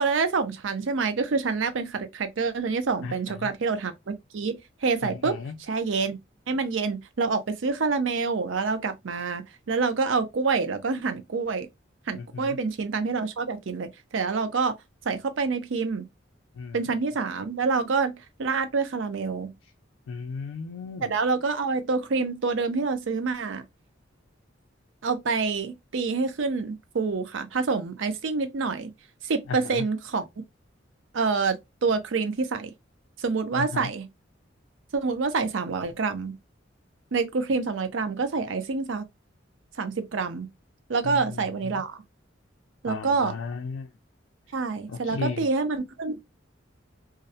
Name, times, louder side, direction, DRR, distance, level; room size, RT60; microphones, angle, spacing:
voice 1, 0.0-6.2 6.5-11.7 12.1-14.7 15.1-16.1 16.7-19.5 21.0-23.6 25.0-28.9 29.2-30.3 31.1-32.7 33.2-34.1 34.9-36.3 37.1-39.1 39.8-40.5 40.9-42.0 42.8-43.3 44.5-46.2, right 4 dB, 80° right, 0.5 m, -27 dB
voice 2, 5.0-5.5 12.1-12.6 16.6-16.8 20.1-21.1 29.5-29.8 33.6-33.9 41.0-41.4 41.7-41.8 42.9-43.9 44.9-45.5, left 5 dB, 90° left, 0.4 m, -35 dB
2.5 x 2.1 x 2.7 m
head